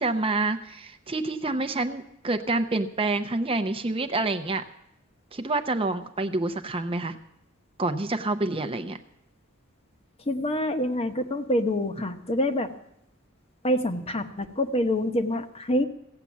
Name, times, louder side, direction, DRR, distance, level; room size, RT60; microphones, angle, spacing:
voice 1, 0.0-4.6 5.3-7.2 7.8-9.0, right 2 dB, 25° right, 8 dB, 0.7 m, -27 dB
voice 2, 10.3-12.7 13.6-15.8, left 1 dB, 30° left, 8 dB, 0.9 m, -26 dB
16.0 x 8.2 x 7.3 m, 0.80 s
head